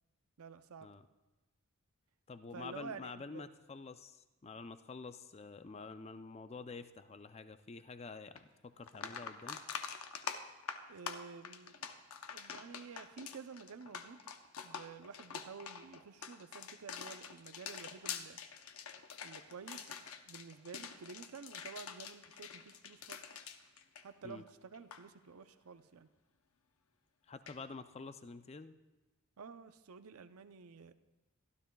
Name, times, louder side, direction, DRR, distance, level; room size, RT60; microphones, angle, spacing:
voice 1, 0.4-0.9 2.5-3.5 10.9-11.8 12.3-14.3 14.6-18.4 19.2-23.2 24.0-26.1 29.4-30.9, right 5 dB, 80° right, 11 dB, 0.6 m, -51 dB
voice 2, 2.3-9.6 24.2-24.4 27.3-28.7, left 4 dB, 30° left, 11 dB, 0.4 m, -48 dB
sound 1, 8.4-8.5 8.8-24.5 24.7-25.0 27.5-27.6, left 7 dB, 75° left, 0.7 m, -46 dB
24.0 x 12.5 x 2.3 m, 1.1 s
head